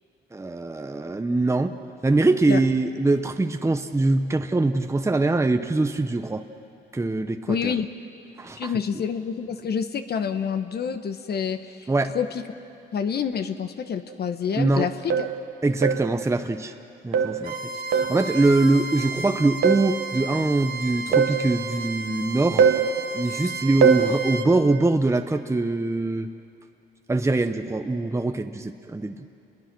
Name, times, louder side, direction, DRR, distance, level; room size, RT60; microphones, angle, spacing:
voice 1, 0.3-1.7 2.0-6.4 6.9-7.7 8.4-8.7 11.9-12.1 14.6-14.9 15.6-16.7 17.0-17.6 17.9-22.7 23.1-26.3 27.1-29.1, right 2 dB, 15° right, 7 dB, 0.9 m, -23 dB
voice 2, 7.5-7.9 8.6-11.9 12.1-12.4 12.9-15.3, left 7 dB, 55° left, 8 dB, 1.1 m, -27 dB
sound 1, 14.1-14.2 15.1-15.4 15.8-16.1 17.1-17.4 17.9-18.2 19.6-19.9 21.1-21.4 22.6-22.9 23.8-24.1, right 7 dB, 85° right, 1.6 m, -20 dB
Bowed string instrument, 17.4-24.5, right 4 dB, 50° right, 1.6 m, -34 dB
29.5 x 21.5 x 6.1 m, 2.6 s
cardioid pair, 90°, 20 cm